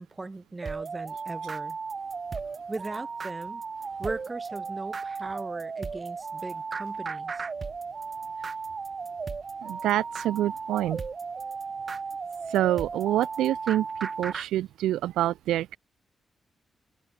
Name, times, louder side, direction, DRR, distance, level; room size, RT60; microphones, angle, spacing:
voice 1, 0.0-1.8 2.7-3.6 4.0-7.5, right 3 dB, 30° right, 2.2 m, -38 dB
sound 1, 0.6-14.5, right 5 dB, 50° right, 3.2 m, -35 dB
voice 2, 9.6-11.0 12.5-15.8, right 13 dB, 85° right, 0.7 m, -27 dB
supercardioid pair, 50°, 0 cm